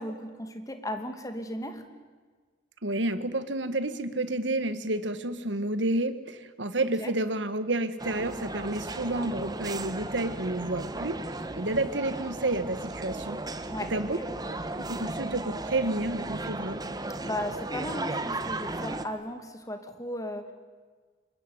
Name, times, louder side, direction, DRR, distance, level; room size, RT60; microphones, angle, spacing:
voice 1, 0.0-1.9 6.8-7.1 13.7-14.3 17.2-20.5, left 1 dB, 20° left, 6 dB, 2.4 m, -36 dB
voice 2, 2.8-13.6 13.9-14.2 14.5-16.8, right 2 dB, 75° right, 12 dB, 1.7 m, -30 dB
sound 1, 8.0-19.1, right 2 dB, 20° right, 1.3 m, -35 dB
26.0 x 21.5 x 9.8 m, 1.5 s
head